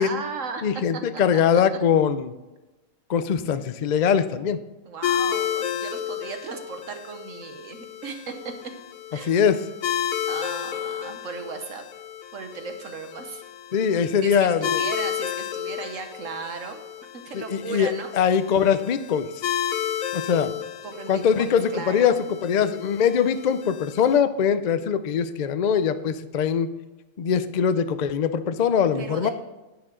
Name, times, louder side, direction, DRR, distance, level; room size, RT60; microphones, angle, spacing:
voice 1, 0.0-0.7 1.1-1.6 4.8-8.5 9.1-9.3 10.3-11.8 12.3-13.4 14.2-16.8 17.2-18.1 20.8-22.2 28.9-29.3, right 5 dB, 70° right, 6 dB, 1.3 m, -36 dB
voice 2, 0.6-2.3 3.1-4.6 9.3-9.6 13.7-14.8 17.3-19.3 20.1-20.5 21.1-22.1 22.4-26.7 27.2-29.3, left 7 dB, 55° left, 11 dB, 0.5 m, -22 dB
sound 1, 5.0-24.2, left 9 dB, 85° left, 1.2 m, -32 dB
10.5 x 9.0 x 3.8 m, 1.1 s
omnidirectional pair, 1.4 m